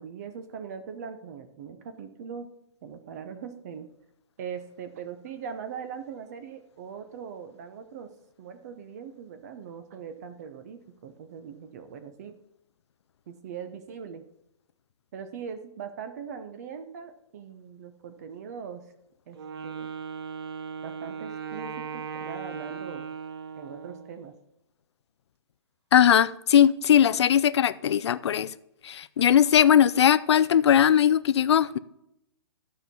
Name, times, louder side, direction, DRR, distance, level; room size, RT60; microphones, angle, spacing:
voice 1, 0.0-2.5 2.8-3.9 4.4-8.1 8.4-12.3 13.3-14.2 15.1-18.8 19.3-19.4 19.6-19.9 20.8-23.1 23.6-24.3, right 7 dB, 35° right, 0.7 m, -40 dB
Wind instrument woodwind instrument, 19.3-24.2, right 6 dB, 55° right, 0.9 m, -38 dB
voice 2, 25.9-28.5 28.8-31.8, left 9 dB, 65° left, 0.5 m, -20 dB
12.5 x 4.6 x 5.3 m
hypercardioid pair, 165°, 15 cm